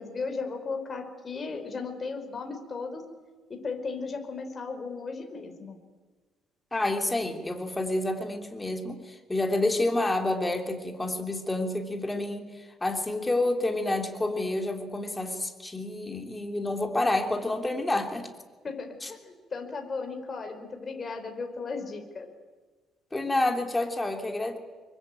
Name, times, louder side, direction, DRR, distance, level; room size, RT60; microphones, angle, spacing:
voice 1, 0.0-3.0 3.6-5.8 18.6-22.3, left 4 dB, 30° left, 5 dB, 4.9 m, -36 dB
voice 2, 6.7-18.3 19.0-19.1 23.1-24.6, left 2 dB, 10° left, 4 dB, 3.2 m, -29 dB
26.5 x 23.0 x 9.1 m, 1.4 s
cardioid pair, 140°, 0 cm